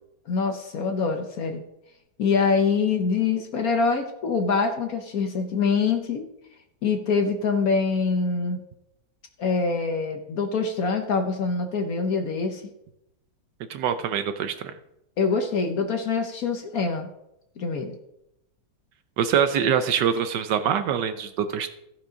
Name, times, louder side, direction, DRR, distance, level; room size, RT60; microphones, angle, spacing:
voice 1, 0.3-1.6 2.2-6.2 6.8-8.6 9.4-12.6 15.2-17.1 17.6-18.0, left 4 dB, 55° left, 5 dB, 1.1 m, -24 dB
voice 2, 13.7-14.5 19.2-21.7, right 8 dB, 70° right, 10 dB, 1.2 m, -24 dB
14.5 x 5.6 x 5.1 m, 0.85 s
omnidirectional pair, 2.1 m